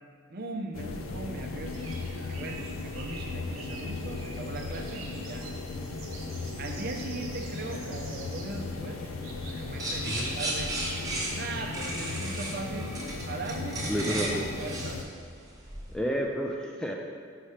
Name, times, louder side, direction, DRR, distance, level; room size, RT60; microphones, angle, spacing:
voice 1, 0.3-5.5 6.6-9.1 9.5-10.7 11.3-13.0 13.3-15.1, right 3 dB, 50° right, 3 dB, 0.6 m, -39 dB
sound 1, 0.7-15.0, left 3 dB, 85° left, 0.5 m, -37 dB
sound 2, 1.7-12.3, right 3 dB, 85° right, 0.9 m, -47 dB
sound 3, 9.8-15.9, right 1 dB, 15° right, 1.0 m, -34 dB
voice 2, 13.9-14.4 15.9-16.9, equal, 5° left, 0 dB, 0.3 m, -30 dB
5.7 x 4.2 x 4.9 m, 2.1 s
head